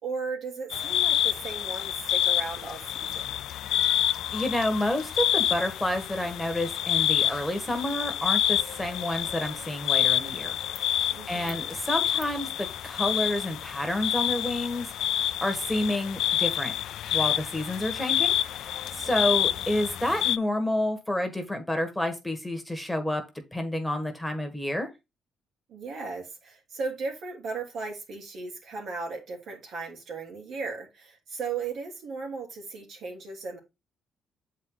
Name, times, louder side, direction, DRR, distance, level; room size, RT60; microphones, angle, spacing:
voice 1, 0.0-3.3 11.1-11.7 19.0-19.5 25.7-33.6, right 4 dB, 70° right, 2.7 m, -36 dB
sound 1, 0.7-20.4, left 11 dB, 80° left, 0.3 m, -28 dB
voice 2, 4.0-10.6 10.9-16.7 17.1-23.2 23.5-24.9, left 1 dB, 5° left, 1.6 m, -29 dB
7.4 x 4.7 x 3.8 m
cardioid pair, 90°, 0 cm